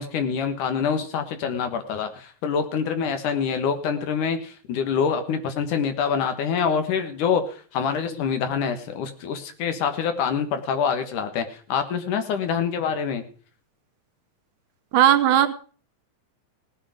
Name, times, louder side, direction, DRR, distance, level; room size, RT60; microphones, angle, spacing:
voice 1, 0.0-7.4 7.7-13.2, left 6 dB, 85° left, 7 dB, 3.1 m, -25 dB
voice 2, 14.9-15.5, right 11 dB, 85° right, 9 dB, 2.4 m, -17 dB
18.0 x 8.7 x 5.0 m, 0.41 s
omnidirectional pair, 3.5 m